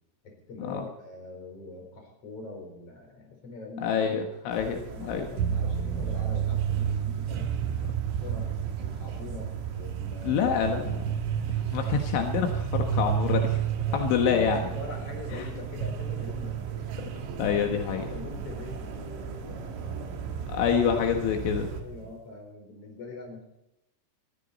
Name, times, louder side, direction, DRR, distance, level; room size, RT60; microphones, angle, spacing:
voice 1, 0.2-3.9 4.9-8.5 8.8-10.4 11.7-11.9 13.8-14.0 14.5-16.6 18.1-20.0 21.8-23.4, left 3 dB, 30° left, 2 dB, 5.2 m, -43 dB
voice 2, 3.8-5.3 10.2-11.1 11.5-13.6 13.9-14.6 15.4-15.5 17.0-17.1 17.4-18.1 20.5-21.7, left 7 dB, 75° left, 3 dB, 3.7 m, -27 dB
sound 1, 4.5-21.8, right 5 dB, 70° right, 4.2 m, -41 dB
sound 2, 5.4-22.2, right 9 dB, 90° right, 4.0 m, -32 dB
22.5 x 14.5 x 4.2 m, 0.91 s
omnidirectional pair, 5.5 m